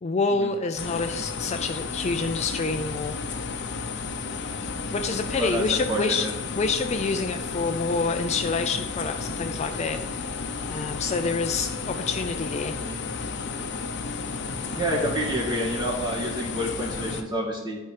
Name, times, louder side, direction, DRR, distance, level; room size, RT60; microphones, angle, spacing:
voice 1, 0.0-3.2 4.9-6.3 6.5-10.2 10.7-12.7, left 4 dB, 30° left, 7 dB, 0.4 m, -27 dB
sound 1, 0.8-17.2, left 4 dB, 55° left, 0.7 m, -33 dB
voice 2, 5.4-6.3 12.8-12.9 14.7-17.8, right 1 dB, 20° right, -4 dB, 2.3 m, -28 dB
11.5 x 4.5 x 4.9 m, 1.3 s
head